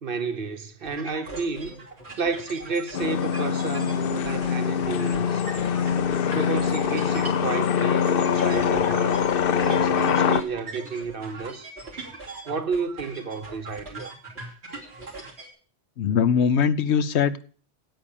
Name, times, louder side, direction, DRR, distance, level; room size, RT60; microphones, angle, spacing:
voice 1, 0.0-1.8 2.2-5.4 6.3-9.2 9.7-11.7 12.5-14.1, right 4 dB, 55° right, 1.1 m, -31 dB
sound 1, 0.8-15.5, right 3 dB, 75° right, 3.4 m, -40 dB
sound 2, 2.9-10.4, left 7 dB, 60° left, 0.8 m, -23 dB
voice 2, 16.0-17.4, left 7 dB, 85° left, 1.0 m, -21 dB
9.0 x 8.7 x 7.2 m
omnidirectional pair, 1.1 m